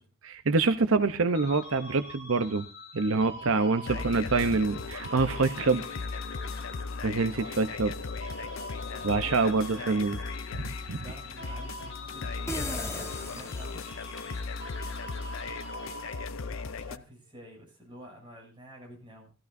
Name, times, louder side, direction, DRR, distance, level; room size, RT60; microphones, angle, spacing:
voice 1, 0.2-2.6 2.9-5.8 7.0-7.9 9.0-10.2 10.5-11.0, right 3 dB, 80° right, 9 dB, 0.8 m, -26 dB
sound 1, 1.3-16.6, left 2 dB, 60° left, 5.9 m, -44 dB
voice 2, 3.6-4.1 7.7-7.8 8.8-10.1 11.0-13.9 16.3-19.3, equal, 20° right, -1 dB, 7.2 m, -49 dB
sound 2, 3.9-17.0, left 4 dB, 80° left, 0.7 m, -37 dB
sound 3, 12.5-14.3, left 1 dB, 15° left, 1.3 m, -37 dB
15.5 x 14.5 x 2.7 m, 0.32 s
head